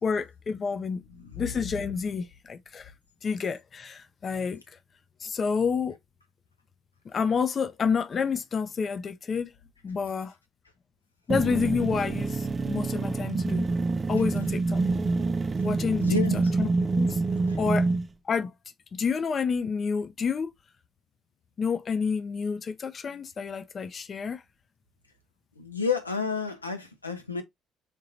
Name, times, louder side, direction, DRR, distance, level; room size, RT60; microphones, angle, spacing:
voice 1, 0.0-2.9 3.2-4.6 5.2-6.0 7.1-9.5 9.8-10.3 11.3-13.7 14.1-14.8 15.6-16.1 16.3-16.7 16.9-17.2 17.6-17.9 18.3-18.5 18.9-20.5 21.6-24.4, left 5 dB, 35° left, 0.6 m, -29 dB
sound 1, 11.3-18.1, right 3 dB, 25° right, 0.6 m, -26 dB
voice 2, 16.0-16.5 17.5-17.6 25.6-27.4, left 5 dB, 85° left, 0.7 m, -30 dB
5.4 x 3.7 x 2.6 m
figure-of-eight pair, 50°, 0 cm